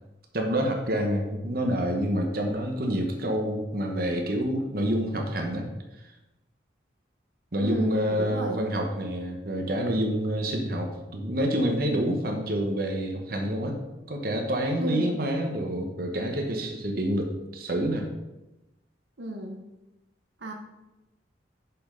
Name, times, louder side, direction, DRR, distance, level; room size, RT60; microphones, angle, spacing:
voice 1, 0.3-5.7 7.5-13.8 14.1-18.1, equal, 55° right, 2 dB, 1.2 m, -27 dB
voice 2, 7.6-8.6 14.8-15.2 19.2-19.7 20.4-20.5, right 1 dB, 80° right, 2 dB, 1.0 m, -33 dB
6.3 x 5.7 x 5.2 m, 1.0 s
head